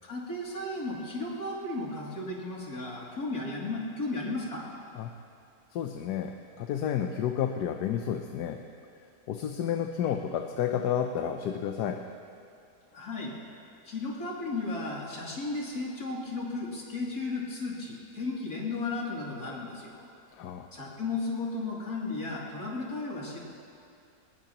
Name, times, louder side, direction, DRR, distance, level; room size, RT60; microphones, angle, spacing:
voice 1, 0.0-4.7 12.9-13.3 13.8-20.0 20.7-23.4, left 3 dB, 65° left, -4 dB, 3.3 m, -34 dB
voice 2, 5.7-8.6 9.3-12.0 20.4-20.7, left 9 dB, 80° left, 5 dB, 1.3 m, -31 dB
22.5 x 20.0 x 3.0 m, 2.5 s
omnidirectional pair, 1.8 m